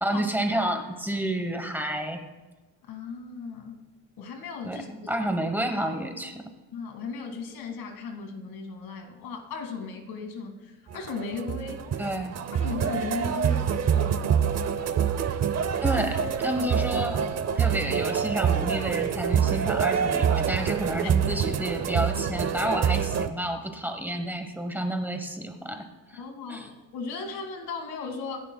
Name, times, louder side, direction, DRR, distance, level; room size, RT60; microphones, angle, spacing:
voice 1, 0.0-2.2 4.6-6.4 12.0-12.4 15.8-17.2 17.6-26.2 26.5-26.7, right 1 dB, 5° right, 5 dB, 1.0 m, -30 dB
voice 2, 2.9-3.8 4.2-4.9 6.7-11.8 12.5-14.4 21.0-21.1 26.2-28.4, left 4 dB, 90° left, 4 dB, 2.1 m, -36 dB
sound 1, 10.9-23.3, right 8 dB, 45° right, 0.7 m, -26 dB
26.0 x 11.0 x 2.3 m, 1.2 s
cardioid pair, 155°, 36 cm